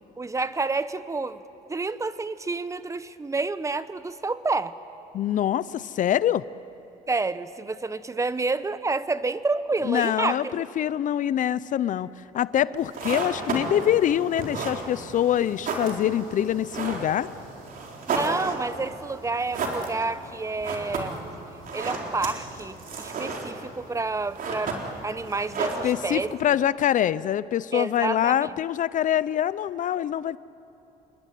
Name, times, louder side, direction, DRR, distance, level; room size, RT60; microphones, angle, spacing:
voice 1, 0.2-1.4 1.7-4.7 7.1-10.6 18.1-21.2 21.7-26.3 27.7-28.5, right 3 dB, 20° right, 14 dB, 0.9 m, -29 dB
voice 2, 5.1-6.4 9.8-12.1 12.3-17.3 25.8-30.4, left 10 dB, 50° left, 18 dB, 0.5 m, -24 dB
sound 1, 12.8-26.4, right 3 dB, 55° right, 4.3 m, -33 dB
27.5 x 21.5 x 9.3 m, 2.9 s
cardioid pair, 110°, 17 cm